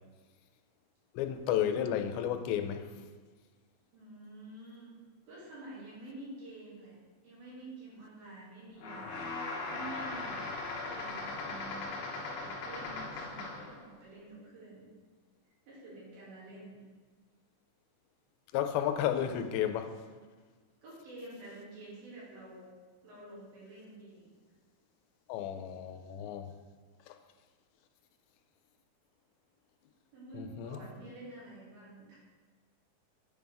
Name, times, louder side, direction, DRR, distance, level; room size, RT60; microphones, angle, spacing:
voice 1, 1.1-2.9 18.5-19.9 25.3-26.5 27.1-27.2 30.3-30.8, left 10 dB, 85° left, 7 dB, 2.4 m, -32 dB
voice 2, 3.9-4.9 5.3-9.1 9.6-14.9 15.7-16.8 20.8-22.7 23.0-24.3 30.1-32.2, right 2 dB, 85° right, -8 dB, 4.4 m, -49 dB
sound 1, 8.8-13.8, left 3 dB, 70° left, 2.0 m, -39 dB
8.4 x 5.2 x 3.4 m, 1.4 s
omnidirectional pair, 4.2 m